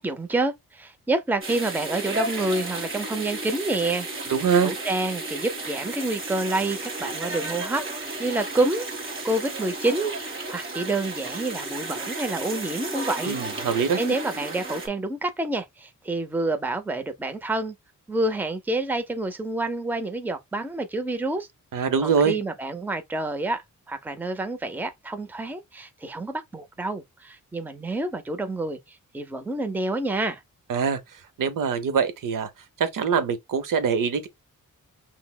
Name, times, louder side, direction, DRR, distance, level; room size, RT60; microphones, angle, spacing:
voice 1, 0.0-4.1 4.6-8.9 9.2-13.4 13.9-17.7 18.1-21.5 22.0-23.6 23.9-30.4, right 2 dB, 5° right, 0.5 m, -28 dB
sound 1, 1.4-14.9, right 2 dB, 40° right, 1.3 m, -33 dB
voice 2, 4.3-4.7 13.3-14.0 21.7-22.4 30.7-31.0 31.4-32.5 32.8-34.3, right 6 dB, 75° right, 0.7 m, -23 dB
5.6 x 2.0 x 2.2 m
wide cardioid pair, 100°, 32 cm